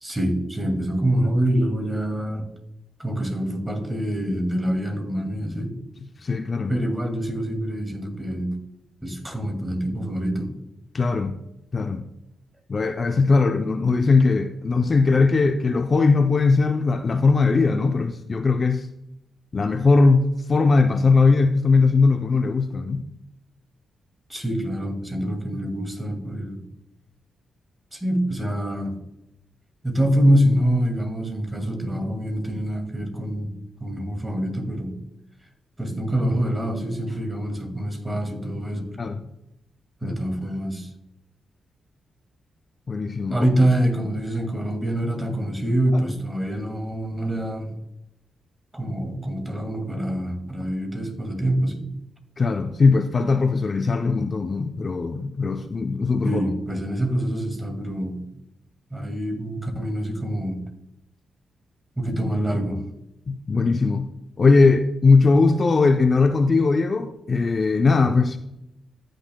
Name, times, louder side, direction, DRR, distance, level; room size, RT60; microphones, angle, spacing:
voice 1, 0.0-2.5 3.0-5.8 6.7-8.5 9.0-10.5 24.3-26.6 27.9-29.0 29.8-33.5 33.8-35.0 35.8-39.2 40.0-40.9 43.3-47.7 48.7-51.9 56.2-58.3 58.9-60.6 62.0-62.8, right 1 dB, 15° right, 2.3 m, -25 dB
voice 2, 6.2-6.8 10.9-11.4 11.7-12.1 12.7-18.9 19.5-23.0 39.0-39.2 40.0-40.2 42.9-43.4 52.4-56.4 63.3-64.1 64.4-68.4, left 4 dB, 45° left, 0.5 m, -19 dB
14.5 x 6.4 x 2.2 m
supercardioid pair, 55°, 0 cm